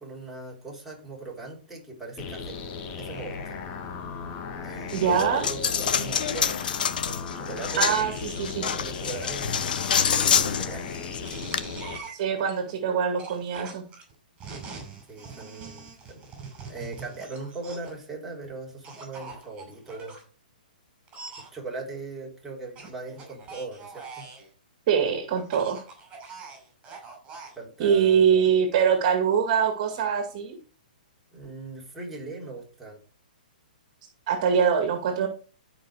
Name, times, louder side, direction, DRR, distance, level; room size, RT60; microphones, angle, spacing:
voice 1, 0.0-2.6 3.0-3.6 4.6-6.6 6.9-8.0 8.6-10.9 15.1-16.2 16.7-20.2 21.5-24.2 27.6-28.5 31.3-33.0, right 3 dB, 5° right, -4 dB, 3.8 m, -39 dB
sound 1, 2.2-12.0, left 5 dB, 35° left, 1.9 m, -37 dB
Coin (dropping), 4.9-11.6, left 7 dB, 70° left, 1.1 m, -27 dB
voice 2, 4.9-5.4 7.8-8.6 12.1-13.9 24.9-25.8 27.8-30.6 34.3-35.3, right 7 dB, 45° right, 6 dB, 2.1 m, -23 dB
sound 2, 11.2-12.5 13.2-18.0 18.8-20.2 21.1-21.5 22.8-24.5 25.4-27.6, right 4 dB, 20° right, 5.8 m, -43 dB
13.0 x 5.5 x 4.9 m, 0.37 s
hypercardioid pair, 135°, 5 cm